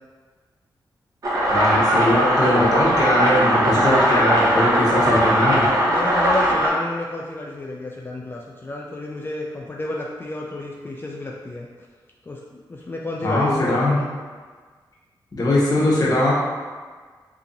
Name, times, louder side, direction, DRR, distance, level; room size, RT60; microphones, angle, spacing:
sound 1, 1.2-6.7, equal, 45° right, 0.9 m, -19 dB
voice 1, 1.5-5.6 13.2-14.0 15.3-16.3, left 1 dB, 50° left, -7 dB, 0.9 m, -20 dB
voice 2, 5.9-11.7 12.2-14.1, left 2 dB, 25° left, -2 dB, 0.3 m, -31 dB
2.8 x 2.5 x 3.9 m, 1.5 s
wide cardioid pair, 90°, 8 cm